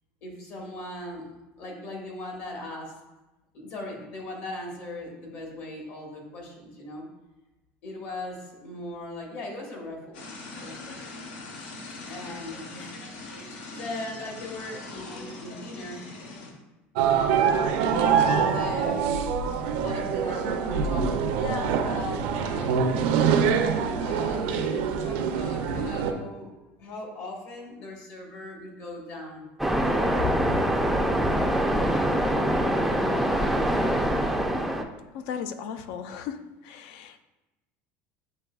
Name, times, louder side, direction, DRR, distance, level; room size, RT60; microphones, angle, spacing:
voice 1, 0.2-1.3 1.6-2.9 3.5-7.1 7.8-10.2 10.6-10.9 12.0-13.0 13.3-16.1 17.7-19.1 19.8-23.0 24.0-26.5 26.8-29.5 30.2-30.6, left 2 dB, 55° left, 0 dB, 1.4 m, -38 dB
sound 1, 10.1-16.5, left 3 dB, 85° left, 0.8 m, -41 dB
sound 2, 17.0-26.1, right 6 dB, 80° right, 0.5 m, -25 dB
Waves surf, 29.6-34.8, right 1 dB, ahead, 0.3 m, -24 dB
voice 2, 35.1-37.2, left 7 dB, 70° left, 10 dB, 0.4 m, -36 dB
7.9 x 2.9 x 2.3 m, 1.0 s
cardioid pair, 140°, 5 cm